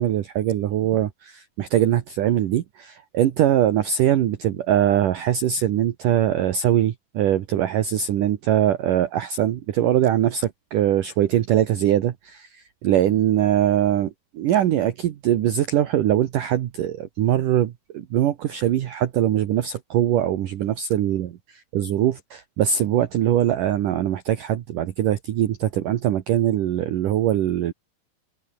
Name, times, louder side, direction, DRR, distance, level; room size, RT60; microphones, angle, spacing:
voice 1, 0.0-27.7, right 11 dB, 65° right, 2.5 m, -22 dB
open air
omnidirectional pair, 4.8 m